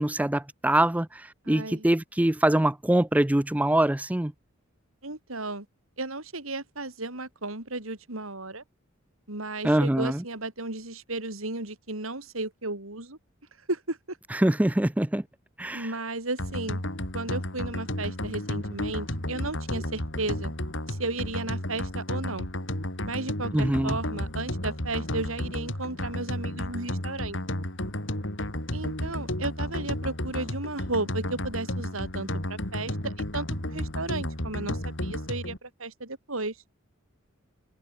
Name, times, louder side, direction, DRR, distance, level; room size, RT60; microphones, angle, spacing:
voice 1, 0.0-4.3 9.6-10.2 14.3-15.2 15.6-15.9 23.5-24.0, right 1 dB, 5° right, 0.4 m, -24 dB
voice 2, 1.4-1.9 5.0-5.7 6.0-8.6 9.3-13.2 13.7-14.2 15.7-16.8 17.1-20.5 20.9-22.5 23.0-27.4 28.7-36.6, right 2 dB, 85° right, 4.9 m, -34 dB
sound 1, 16.4-35.6, left 1 dB, 65° left, 5.5 m, -32 dB
head